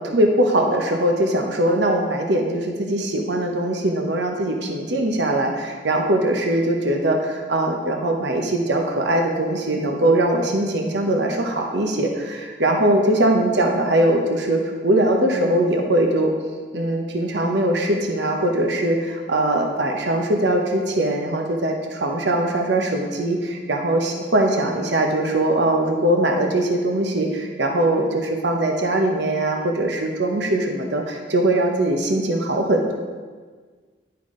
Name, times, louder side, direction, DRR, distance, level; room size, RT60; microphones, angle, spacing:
voice 1, 0.0-16.3 16.7-32.9, right 1 dB, 70° right, 2 dB, 0.9 m, -21 dB
11.0 x 5.7 x 3.8 m, 1.5 s
head